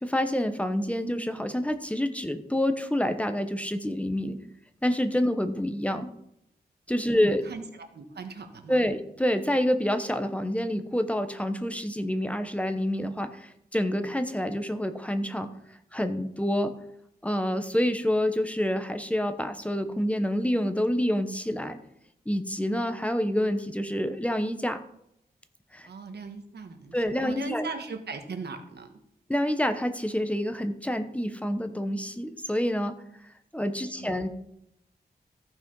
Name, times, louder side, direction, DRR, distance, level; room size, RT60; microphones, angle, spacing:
voice 1, 0.0-4.4 4.8-6.1 6.9-7.5 8.7-15.5 15.9-16.7 17.2-21.8 22.3-24.8 25.7-25.9 26.9-27.6 29.3-33.0 33.5-34.3, equal, 10° left, 8 dB, 0.9 m, -27 dB
voice 2, 7.1-8.9 25.9-28.9 33.9-34.1, right 4 dB, 90° right, 6 dB, 1.4 m, -39 dB
14.5 x 6.1 x 5.4 m, 0.76 s
wide cardioid pair, 140°, 17 cm